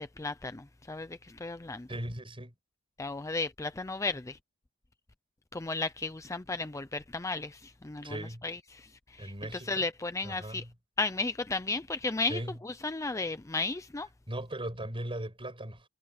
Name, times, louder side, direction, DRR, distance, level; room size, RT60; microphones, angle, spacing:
voice 1, 0.0-1.9 3.0-4.4 5.5-10.7 11.0-14.1, left 3 dB, 15° left, 0.5 m, -34 dB
voice 2, 1.9-2.5 8.0-8.4 9.2-9.9 10.2-10.7 12.3-12.5 14.3-15.8, right 1 dB, 25° right, 6.7 m, -38 dB
head